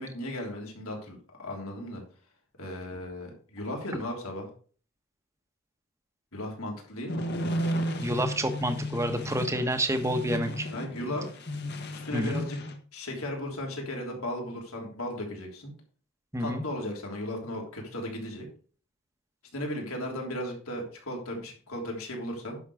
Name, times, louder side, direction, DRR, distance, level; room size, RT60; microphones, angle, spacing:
voice 1, 0.0-2.0 2.6-4.5 6.3-7.2 10.7-11.4 11.9-12.6 12.9-15.7 16.4-18.5 19.5-22.6, left 1 dB, 75° left, 0 dB, 3.4 m, -36 dB
sound 1, 7.1-12.8, equal, 50° left, 1.4 m, -34 dB
voice 2, 8.0-10.7 12.1-12.4 16.3-16.6, right 1 dB, 15° right, 7 dB, 1.2 m, -28 dB
10.5 x 6.4 x 4.9 m, 0.42 s
head